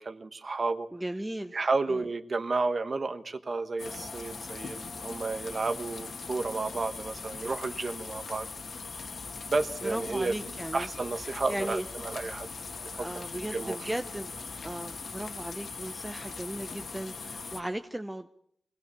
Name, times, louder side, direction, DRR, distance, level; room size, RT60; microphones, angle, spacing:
voice 1, 0.0-0.9 1.5-8.5 9.5-10.3 10.7-12.5 12.8-13.2 13.5-13.9, right 3 dB, 40° right, 11 dB, 1.2 m, -32 dB
voice 2, 0.9-1.6 1.9-2.0 9.8-10.9 11.2-11.8 12.9-14.3 14.6-18.3, right 1 dB, 10° right, 8 dB, 0.7 m, -36 dB
sound 1, 3.8-17.6, left 4 dB, 60° left, 1.9 m, -40 dB
24.0 x 17.5 x 6.9 m, 0.69 s
wide cardioid pair, 125°, 0 cm